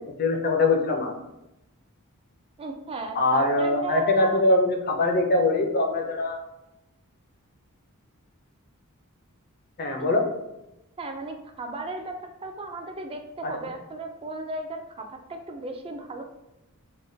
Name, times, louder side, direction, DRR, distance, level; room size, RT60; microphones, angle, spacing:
voice 1, 0.2-1.1 3.2-6.4 9.8-10.2 13.4-13.5, left 2 dB, 45° left, 3 dB, 0.5 m, -22 dB
voice 2, 2.6-4.4 11.0-12.1 12.4-16.2, right 2 dB, 25° right, 4 dB, 0.3 m, -35 dB
3.5 x 2.1 x 2.6 m, 0.92 s
head